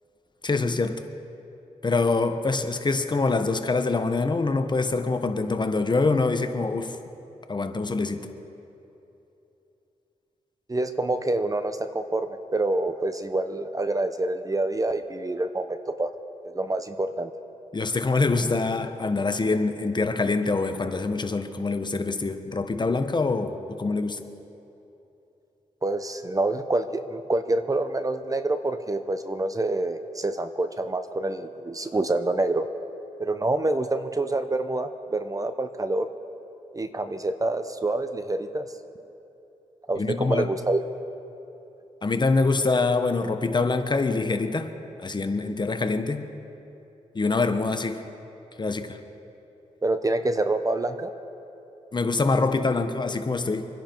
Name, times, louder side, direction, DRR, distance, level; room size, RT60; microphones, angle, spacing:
voice 1, 0.4-1.0 1.8-7.0 7.5-8.2 17.7-24.2 40.0-40.5 42.0-44.7 45.0-46.3 47.1-48.0 48.6-49.0 51.9-53.6, left 3 dB, 35° left, 8 dB, 1.1 m, -25 dB
voice 2, 10.7-16.1 16.4-17.3 25.8-32.7 33.2-36.1 36.7-38.7 39.9-40.8 49.8-51.1, right 2 dB, 25° right, 9 dB, 0.8 m, -27 dB
25.5 x 10.5 x 4.6 m, 3.0 s
cardioid pair, 65°, 13 cm